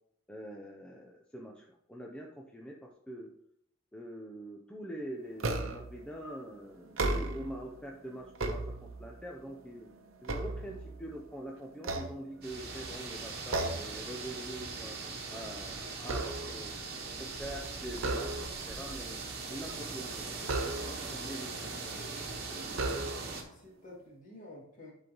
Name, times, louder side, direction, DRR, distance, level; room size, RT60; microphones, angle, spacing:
voice 1, 0.3-3.3 3.9-9.9 10.2-15.0 15.3-16.8 17.2-18.3 18.7-19.2 19.5-20.3 20.5-21.5 21.8-23.0, right 1 dB, 5° left, 0 dB, 0.5 m, -44 dB
sound 1, 5.4-6.0 6.8-7.6 8.1-9.2 9.7-11.2 11.8-12.8 13.5-14.0 14.4-14.6 15.0-16.7 17.9-18.8 20.4-21.2 22.0-22.1 22.7-23.5, right 2 dB, 90° right, 0.8 m, -35 dB
sound 2, 12.4-23.4, right 4 dB, 50° right, 1.2 m, -40 dB
voice 2, 23.5-24.9, left 1 dB, 40° left, -4 dB, 2.3 m, -51 dB
11.0 x 3.9 x 3.0 m, 0.74 s
head